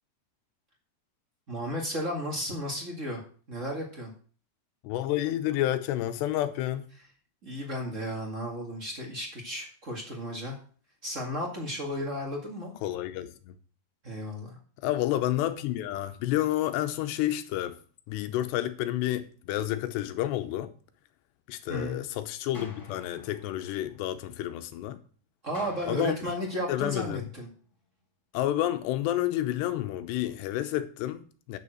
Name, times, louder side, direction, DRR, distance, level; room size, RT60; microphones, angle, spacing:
voice 1, 1.5-3.2 3.5-4.1 7.4-10.6 11.0-12.7 14.0-14.6 21.7-22.0 25.4-27.5, equal, 40° right, 1.1 m, -34 dB
voice 2, 4.8-6.9 12.8-13.6 14.8-17.8 18.1-20.7 21.5-25.0 25.9-26.2 26.7-27.2 28.3-31.6, left 13 dB, 85° left, 3.0 m, -30 dB
sound 1, 22.5-24.6 25.5-27.6, left 2 dB, 30° left, 1.9 m, -49 dB
9.4 x 7.0 x 6.3 m
omnidirectional pair, 4.9 m